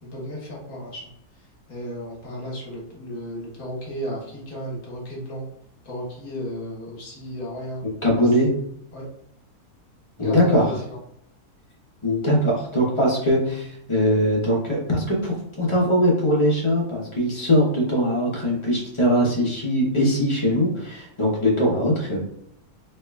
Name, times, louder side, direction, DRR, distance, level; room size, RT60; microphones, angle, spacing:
voice 1, 0.0-1.1 1.7-5.4 5.8-7.8 8.2-8.3 8.9-9.1 10.2-11.0, equal, 70° left, -3 dB, 1.5 m, -34 dB
voice 2, 7.8-8.5 10.2-10.7 12.0-22.2, equal, 30° left, -4 dB, 0.6 m, -21 dB
3.5 x 3.2 x 2.3 m, 0.72 s
omnidirectional pair, 1.6 m